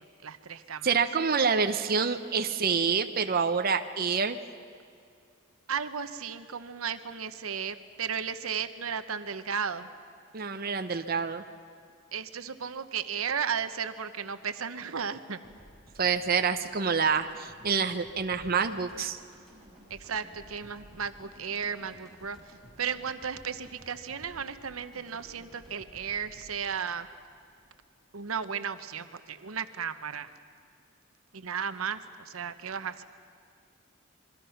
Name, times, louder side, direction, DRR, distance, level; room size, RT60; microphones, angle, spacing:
voice 1, 0.0-0.9 5.7-9.9 12.1-15.4 19.9-22.4 22.8-27.1 28.1-30.3 31.3-33.0, right 7 dB, 90° right, 10 dB, 0.9 m, -34 dB
voice 2, 0.8-4.4 10.3-11.4 16.0-19.2, right 5 dB, 45° right, 7 dB, 0.8 m, -27 dB
sound 1, 15.4-28.2, equal, ahead, 7.6 m, -55 dB
27.0 x 22.5 x 5.8 m, 2.3 s
head